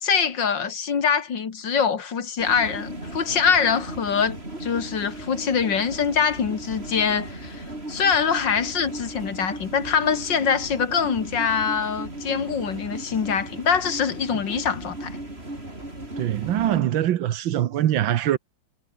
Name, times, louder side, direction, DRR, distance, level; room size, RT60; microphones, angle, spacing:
voice 1, 0.0-15.2, left 6 dB, 70° left, 2.8 m, -24 dB
sound 1, 2.4-16.8, right 1 dB, 30° right, 7.5 m, -36 dB
voice 2, 16.2-18.4, right 12 dB, 85° right, 1.7 m, -23 dB
omnidirectional pair, 2.0 m